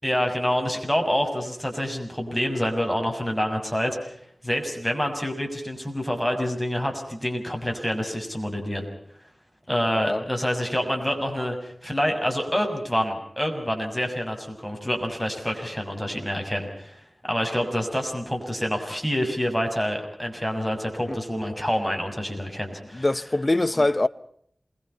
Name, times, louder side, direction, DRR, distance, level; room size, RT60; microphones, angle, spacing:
voice 1, 0.0-4.2 4.4-8.9 9.7-17.0 17.3-23.1, equal, ahead, 6.7 m, -27 dB
voice 2, 22.9-24.1, left 2 dB, 35° left, 0.9 m, -23 dB
28.0 x 22.0 x 5.6 m
wide cardioid pair, 55°, 0 cm